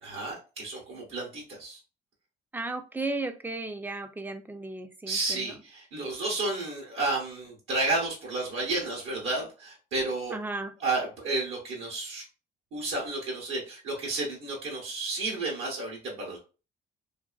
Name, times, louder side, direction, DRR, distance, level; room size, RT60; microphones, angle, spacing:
voice 1, 0.0-1.8 5.1-10.4 10.8-12.2 12.7-16.4, right 2 dB, 80° right, -3 dB, 0.9 m, -31 dB
voice 2, 2.5-5.5 10.3-10.7, right 2 dB, 10° right, 8 dB, 0.3 m, -35 dB
2.6 x 2.4 x 2.3 m, 0.33 s
cardioid pair, 90°, 20 cm